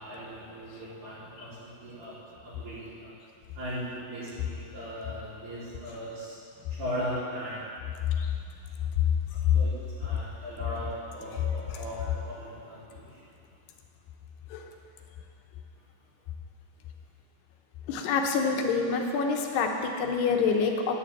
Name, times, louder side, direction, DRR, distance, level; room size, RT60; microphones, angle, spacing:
voice 1, 0.0-1.5 1.8-2.1 2.4-3.1 3.6-3.8 4.1-6.3 6.8-7.6 9.5-9.7 10.0-10.9 11.1-12.8, equal, 65° right, -14 dB, 5.9 m, -38 dB
voice 2, 17.9-20.9, left 5 dB, 80° left, 2 dB, 2.9 m, -27 dB
10.5 x 9.6 x 8.6 m, 2.5 s
omnidirectional pair, 5.0 m